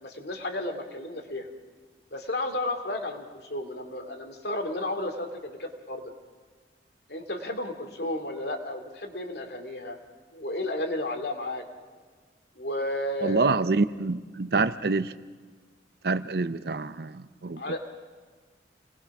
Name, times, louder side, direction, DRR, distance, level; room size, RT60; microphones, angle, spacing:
voice 1, 0.0-1.5 2.1-6.1 7.1-10.0 10.3-11.6 12.6-13.6 17.6-17.8, left 1 dB, 65° left, 5 dB, 2.6 m, -33 dB
voice 2, 13.2-15.1 16.0-17.6, right 3 dB, 60° right, 13 dB, 0.7 m, -26 dB
28.0 x 20.0 x 6.0 m, 1.4 s
head